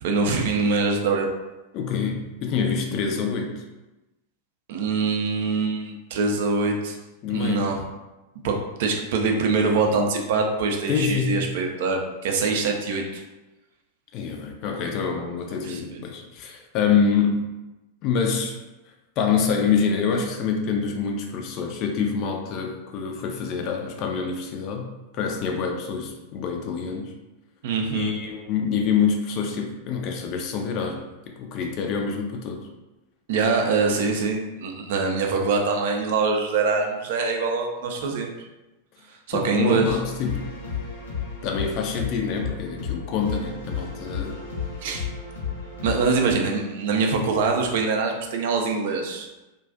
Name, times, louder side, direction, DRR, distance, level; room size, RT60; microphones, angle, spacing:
voice 1, 0.0-1.3 4.7-7.0 7.3-7.8 8.4-13.2 15.6-16.0 27.6-28.1 33.3-38.3 39.3-40.0 44.8-45.1 45.8-49.3, right 4 dB, 55° right, 2 dB, 0.4 m, -24 dB
voice 2, 1.7-3.6 7.2-7.7 10.9-11.6 14.1-17.5 18.0-18.6 19.2-27.1 27.9-31.0 31.4-32.7 39.3-40.5 41.4-44.4, left 6 dB, 40° left, 3 dB, 0.4 m, -26 dB
sound 1, 39.9-46.3, left 6 dB, 75° left, 0.7 m, -33 dB
2.3 x 2.2 x 2.4 m, 1.0 s
figure-of-eight pair, 90°, 0 cm